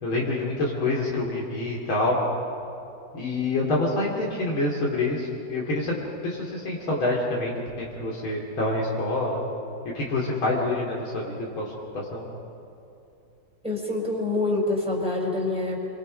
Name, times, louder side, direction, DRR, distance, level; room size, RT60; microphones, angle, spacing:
voice 1, 0.0-2.2 3.1-6.0 6.2-9.4 9.8-12.2, left 2 dB, 75° left, -4 dB, 3.5 m, -27 dB
voice 2, 13.6-15.9, left 2 dB, 5° right, -2 dB, 4.2 m, -26 dB
29.0 x 23.5 x 5.2 m, 2.8 s
omnidirectional pair, 2.3 m